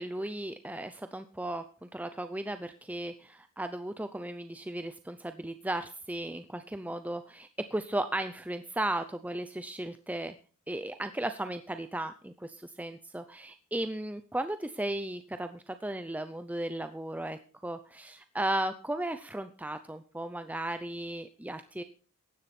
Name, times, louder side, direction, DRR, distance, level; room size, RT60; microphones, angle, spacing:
voice 1, 0.0-10.3 10.7-21.8, right 1 dB, 5° right, 9 dB, 0.5 m, -35 dB
15.0 x 10.5 x 4.3 m, 0.38 s
head